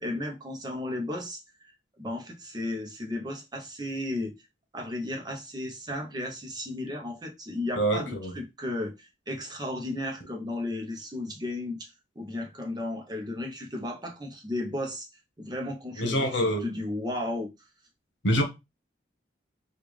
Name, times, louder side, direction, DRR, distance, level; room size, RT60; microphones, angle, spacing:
voice 1, 0.0-1.7 2.0-4.4 4.7-15.1 15.4-17.5, left 1 dB, 20° right, 0.7 m, -34 dB
voice 2, 7.8-8.3 16.0-16.7 18.2-18.4, equal, 80° left, 1.0 m, -25 dB
3.5 x 2.4 x 3.1 m
head